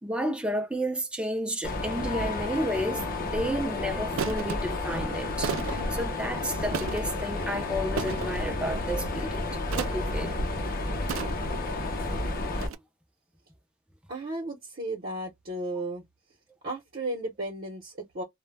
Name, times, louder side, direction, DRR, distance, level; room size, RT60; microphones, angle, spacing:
voice 1, 0.0-10.4 11.8-11.9 12.6-12.7, equal, 5° right, 0.5 m, -32 dB
Mechanisms, 1.6-12.7, left 2 dB, 45° left, 0.7 m, -31 dB
Foley Object Toolbox Metal Drop Mono, 3.0-3.2 4.2-4.6 5.4-5.9 6.7-7.2 8.0-8.4 9.7-10.1 11.1-11.6 12.6-12.7, right 7 dB, 80° right, 0.3 m, -33 dB
voice 2, 14.1-16.0 16.6-18.2, right 1 dB, 50° right, 0.8 m, -34 dB
2.1 x 2.1 x 3.2 m
head